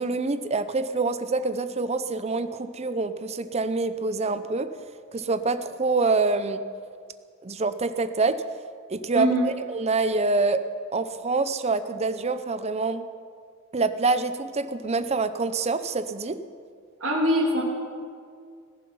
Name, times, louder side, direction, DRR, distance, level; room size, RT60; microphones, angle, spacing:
voice 1, 0.0-4.7 5.1-6.6 7.4-8.4 8.9-10.6 10.9-13.0 13.7-16.4, right 3 dB, 30° right, 12 dB, 0.7 m, -26 dB
voice 2, 9.1-9.5 17.0-17.6, equal, 70° right, -3 dB, 2.8 m, -22 dB
16.5 x 14.5 x 5.5 m, 2.2 s
head